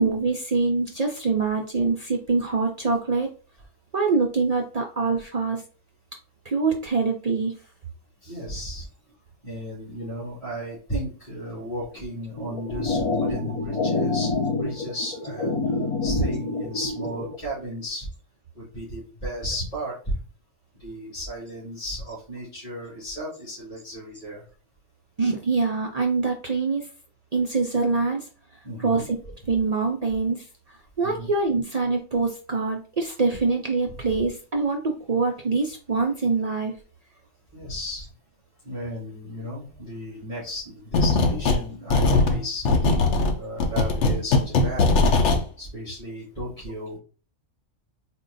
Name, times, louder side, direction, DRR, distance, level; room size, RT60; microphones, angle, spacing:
voice 1, 0.0-3.3 3.9-5.6 6.5-7.5 25.2-26.8 27.3-28.2 28.8-29.2 29.5-30.4 31.0-36.7, right 4 dB, 50° right, 2 dB, 0.4 m, -24 dB
voice 2, 8.2-8.9 9.4-15.6 16.0-18.1 18.5-20.2 20.8-24.4 28.6-29.1 31.0-31.3 37.5-38.1 38.6-45.0 45.6-47.0, equal, 30° left, -8 dB, 1.9 m, -34 dB
sound 1, 12.4-17.4, left 3 dB, 50° left, 0.4 m, -27 dB
sound 2, 40.9-41.6 41.9-45.4, left 3 dB, 70° left, 0.9 m, -20 dB
4.1 x 2.2 x 3.8 m, 0.38 s
omnidirectional pair, 1.3 m